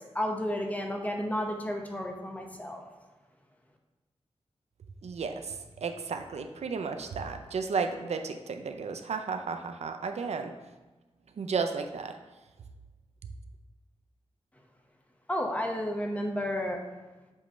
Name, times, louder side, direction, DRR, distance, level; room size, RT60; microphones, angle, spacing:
voice 1, 0.1-2.8 15.3-16.8, left 1 dB, 15° left, 2 dB, 0.8 m, -32 dB
voice 2, 5.0-10.5 11.4-12.1, right 5 dB, 75° right, 7 dB, 0.5 m, -33 dB
7.4 x 3.1 x 4.4 m, 1.2 s
wide cardioid pair, 95°, 11 cm